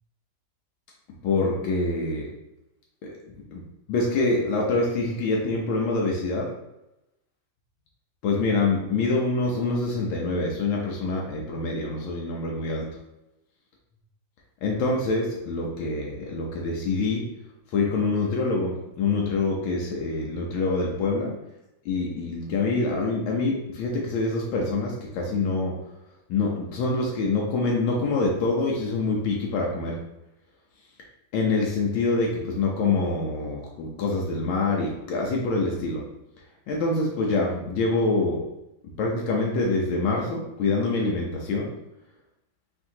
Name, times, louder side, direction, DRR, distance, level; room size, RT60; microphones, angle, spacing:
voice 1, 1.2-2.3 3.5-3.6 3.9-6.5 8.2-12.9 14.6-17.3 17.7-21.3 21.8-25.7 26.3-30.0 31.3-36.0 36.7-38.4 39.0-41.7, left 3 dB, 85° left, -2 dB, 1.5 m, -25 dB
4.5 x 3.5 x 2.8 m, 0.90 s
omnidirectional pair, 2.1 m